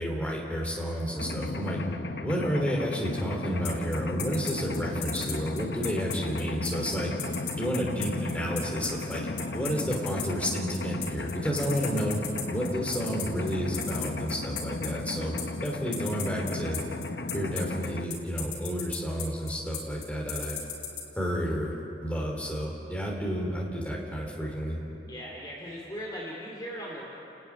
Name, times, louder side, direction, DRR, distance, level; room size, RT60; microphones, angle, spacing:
voice 1, 0.0-1.8 2.2-7.1 7.5-9.2 9.5-12.2 12.5-15.3 15.6-16.8 17.3-20.6 21.2-21.8 22.0-24.8, equal, 5° left, -2 dB, 3.8 m, -31 dB
Mechanisms, 1.2-18.0, left 2 dB, 65° left, 0.9 m, -35 dB
sound 1, 3.6-21.0, left 9 dB, 85° left, 4.7 m, -35 dB
voice 2, 25.0-27.1, equal, 25° left, -3 dB, 2.9 m, -38 dB
29.5 x 12.5 x 9.9 m, 2.9 s
head